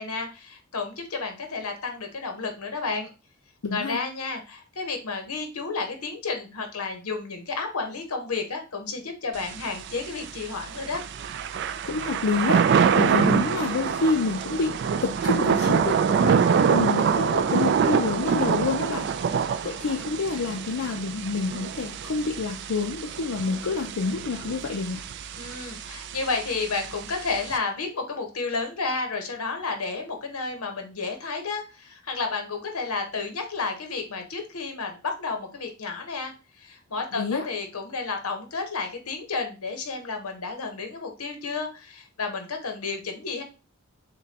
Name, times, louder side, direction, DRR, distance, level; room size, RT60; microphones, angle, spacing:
voice 1, 0.0-3.1 3.7-11.0 25.4-43.4, left 4 dB, 90° left, 4 dB, 1.0 m, -31 dB
voice 2, 3.6-4.0 11.8-14.7 15.0-19.1 19.6-25.0 37.2-37.5, left 4 dB, 70° left, 2 dB, 0.5 m, -28 dB
Thunder / Rain, 9.4-27.6, right 6 dB, 50° right, 0.3 m, -26 dB
6.7 x 2.2 x 2.8 m, 0.31 s
head